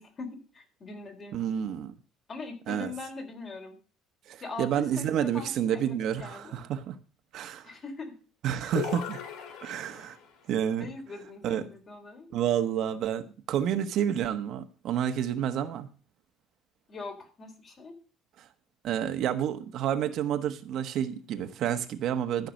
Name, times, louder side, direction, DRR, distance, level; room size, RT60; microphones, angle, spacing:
voice 1, 0.0-1.7 2.3-3.7 4.4-6.6 7.6-8.1 8.6-8.7 10.8-12.3 16.9-18.0, left 3 dB, 35° left, 3.8 m, -42 dB
voice 2, 1.3-1.9 2.7-2.9 4.3-7.0 7.3-7.7 8.4-9.2 9.6-10.2 10.5-10.9 11.4-11.6 12.3-15.9 18.4-18.5 18.8-22.5, right 9 dB, 60° right, 1.2 m, -29 dB
sound 1, 8.7-10.3, left 8 dB, 75° left, 2.3 m, -37 dB
13.5 x 5.8 x 6.5 m
cardioid pair, 125°, 0 cm